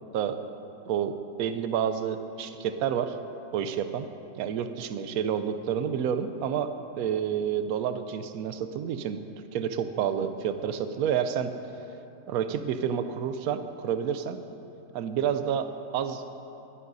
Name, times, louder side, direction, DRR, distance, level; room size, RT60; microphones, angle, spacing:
voice 1, 0.9-3.2 3.5-4.1 4.4-9.2 9.5-11.5 12.3-14.4 14.9-16.2, right 8 dB, 75° right, 9 dB, 1.0 m, -29 dB
17.5 x 11.0 x 2.6 m, 2.9 s
omnidirectional pair, 1.6 m